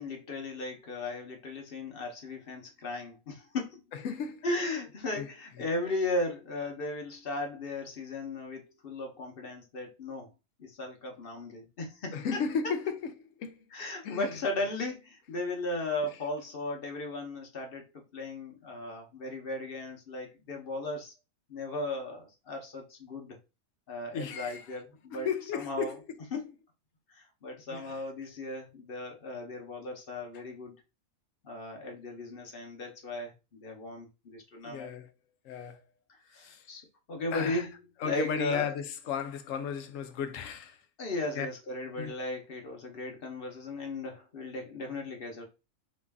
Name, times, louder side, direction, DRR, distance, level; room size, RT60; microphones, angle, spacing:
voice 1, 0.0-3.8 4.4-10.3 10.6-12.7 13.7-21.1 21.5-23.4 23.9-25.3 25.5-26.0 26.3-26.5 27.1-30.8 31.4-33.3 33.6-34.9 36.1-36.8 37.1-38.7 41.0-45.4, left 2 dB, 45° left, 1.0 m, -36 dB
voice 2, 4.0-4.4 5.2-5.3 12.1-13.0 13.4-13.6 14.0-14.3 24.1-24.6 25.1-25.9 27.7-27.9 34.6-35.1 35.5-35.8 36.5-36.6 37.3-37.6 38.0-40.7 41.3-41.5 42.0-42.1, left 6 dB, 75° left, 0.9 m, -34 dB
3.1 x 2.5 x 3.4 m
omnidirectional pair, 1.4 m